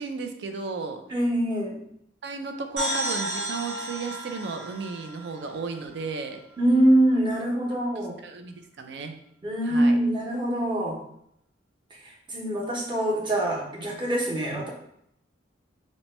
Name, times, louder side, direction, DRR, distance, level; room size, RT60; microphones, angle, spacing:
voice 1, 0.0-1.0 2.2-6.4 7.9-9.1 9.7-10.0, right 4 dB, 70° right, 5 dB, 0.4 m, -34 dB
voice 2, 1.1-1.8 6.6-8.2 9.4-11.0 11.9-14.7, right 1 dB, 25° right, -3 dB, 0.8 m, -24 dB
sound 1, 2.8-6.4, right 1 dB, 85° right, 0.9 m, -33 dB
2.9 x 2.2 x 4.1 m, 0.73 s
head